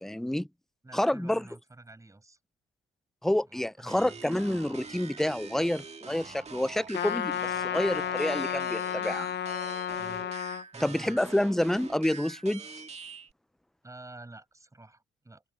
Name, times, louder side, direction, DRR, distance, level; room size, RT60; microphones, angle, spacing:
voice 1, 0.0-0.5 0.9-1.4 3.2-9.3 10.8-12.6, left 1 dB, ahead, 0.4 m, -28 dB
voice 2, 0.8-2.4 3.5-4.2 10.0-10.3 10.7-11.2 13.8-15.4, right 2 dB, 15° right, 6.8 m, -49 dB
sound 1, 3.9-13.3, right 5 dB, 35° right, 2.0 m, -45 dB
Trumpet, 6.9-10.6, left 9 dB, 65° left, 0.7 m, -32 dB
cardioid pair, 90°, 20 cm